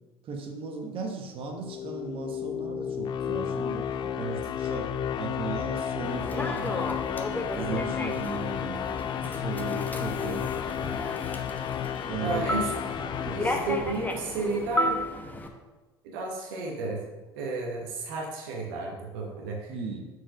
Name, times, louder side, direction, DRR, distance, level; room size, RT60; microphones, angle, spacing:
voice 1, 0.2-6.9 7.5-8.9 9.2-10.5 12.0-12.5 13.2-13.5 19.7-20.1, right 5 dB, 45° right, 3 dB, 1.2 m, -37 dB
sound 1, 1.5-14.6, left 9 dB, 35° left, 0.4 m, -32 dB
Human voice / Subway metro underground, 6.0-15.5, left 1 dB, 15° left, 0.9 m, -34 dB
voice 2, 12.2-12.7 13.3-15.0 16.0-17.0 17.3-19.7, right 3 dB, 65° right, 0 dB, 1.1 m, -32 dB
6.2 x 4.7 x 5.9 m, 1.2 s
figure-of-eight pair, 65°, 13 cm